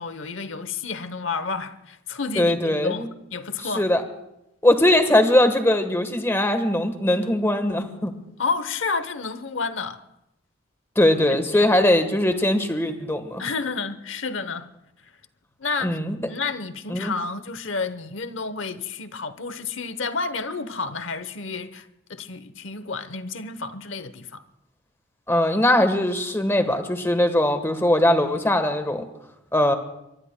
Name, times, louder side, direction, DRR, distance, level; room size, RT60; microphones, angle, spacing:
voice 1, 0.0-3.8 8.4-10.0 11.3-11.7 13.4-14.7 15.6-16.0 16.3-24.4, left 4 dB, 70° left, 0.9 m, -30 dB
voice 2, 2.4-3.1 3.6-4.0 4.6-8.2 10.9-13.4 15.8-16.1 16.9-17.1 25.3-29.1 29.5-29.7, left 1 dB, 15° left, 1.3 m, -20 dB
24.0 x 23.0 x 2.2 m
head